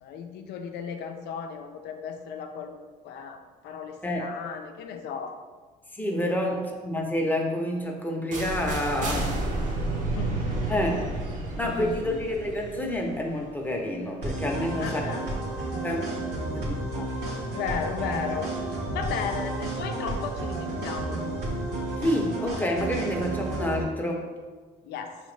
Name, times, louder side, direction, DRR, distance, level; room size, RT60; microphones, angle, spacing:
voice 1, 0.0-5.4 6.5-6.6 10.1-10.4 11.6-12.2 14.8-15.2 17.5-18.5 18.9-21.2 24.8-25.2, left 6 dB, 80° left, 6 dB, 0.5 m, -35 dB
voice 2, 5.9-9.4 10.7-11.1 11.6-15.0 15.8-16.2 16.5-17.1 22.0-24.2, left 1 dB, 10° left, 1 dB, 0.7 m, -28 dB
sound 1, 8.3-14.1, right 2 dB, 50° right, 0.8 m, -31 dB
sound 2, 14.2-23.8, right 2 dB, 75° right, 1.3 m, -32 dB
5.4 x 2.9 x 3.2 m, 1.4 s
cardioid pair, 110°, 17 cm